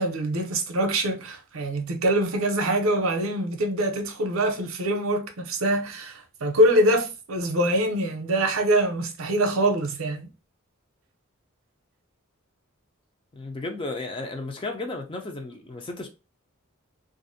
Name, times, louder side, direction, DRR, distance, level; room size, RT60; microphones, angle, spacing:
voice 1, 0.0-10.3, right 1 dB, 70° right, 0.6 m, -24 dB
voice 2, 13.3-16.1, left 2 dB, 25° left, 0.4 m, -34 dB
2.5 x 2.0 x 2.6 m
head